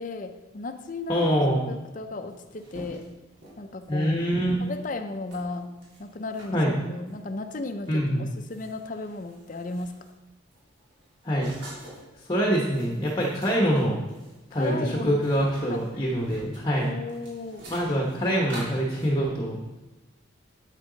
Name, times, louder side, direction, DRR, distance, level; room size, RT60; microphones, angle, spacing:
voice 1, 0.0-1.3 1.7-3.1 3.6-4.2 4.6-5.7 6.0-6.6 6.9-10.0 14.5-15.2 15.5-15.8 16.8-17.7, left 2 dB, 40° left, 8 dB, 0.6 m, -35 dB
voice 2, 1.1-1.6 3.9-4.6 6.5-6.7 7.9-8.2 11.2-11.5 12.2-14.0 14.5-16.9 17.7-19.6, equal, 20° left, -1 dB, 1.1 m, -25 dB
sound 1, 2.3-4.1 4.6-4.8 5.3-6.5 7.1-7.3 7.8-8.0 8.3-10.2 10.5-12.1 12.5-14.7 15.0-19.1, right 1 dB, 65° right, 3.4 m, -46 dB
8.7 x 8.3 x 3.9 m, 1.1 s
head